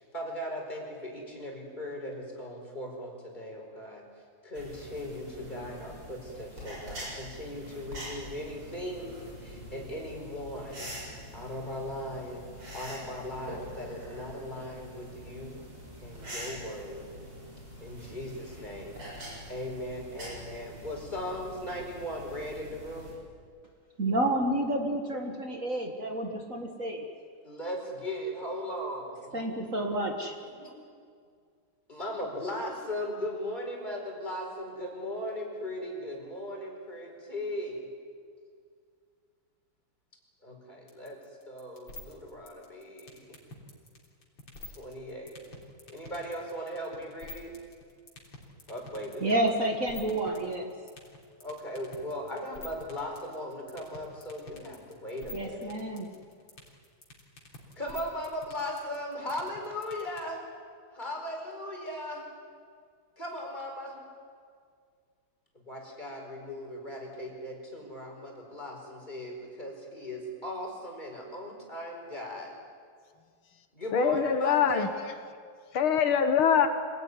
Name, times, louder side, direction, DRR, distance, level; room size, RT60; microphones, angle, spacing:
voice 1, 0.0-4.1 4.4-10.9 11.3-12.5 12.7-15.6 16.0-17.1 17.8-23.2 27.4-29.4 30.4-30.8 31.9-37.9 40.4-41.2 41.5-43.4 44.8-45.4 45.9-47.5 48.7-49.5 51.4-55.7 57.8-60.4 60.9-62.3 63.2-64.0 65.5-72.5 73.7-74.9, equal, 20° left, 0 dB, 5.0 m, -38 dB
sound 1, 4.5-23.1, equal, 90° right, 8.0 m, -45 dB
voice 2, 24.0-27.1 29.3-30.4 49.2-50.7 55.3-56.1, right 1 dB, 40° right, 3 dB, 1.9 m, -30 dB
sound 2, 40.9-60.2, left 2 dB, 65° left, 4.4 m, -46 dB
voice 3, 73.9-74.9 75.7-76.7, left 7 dB, 80° left, 8 dB, 2.1 m, -23 dB
25.5 x 17.5 x 9.8 m, 2.1 s
omnidirectional pair, 2.3 m